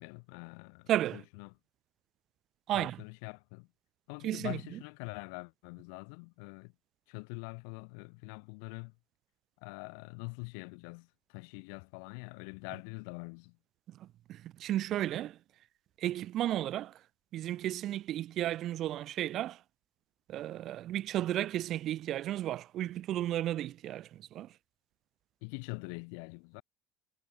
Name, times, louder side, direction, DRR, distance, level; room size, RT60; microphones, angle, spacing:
voice 1, 0.0-1.5 2.7-3.7 4.1-6.7 7.1-8.9 9.6-13.6 25.4-26.6, left 40 dB or more, 75° left, 4.2 m, -44 dB
voice 2, 0.9-1.2 2.7-3.0 4.2-4.6 14.0-15.4 16.0-16.9 17.3-19.6 20.3-24.5, right 13 dB, 45° right, 1.2 m, -33 dB
cardioid pair, 150°, 0 cm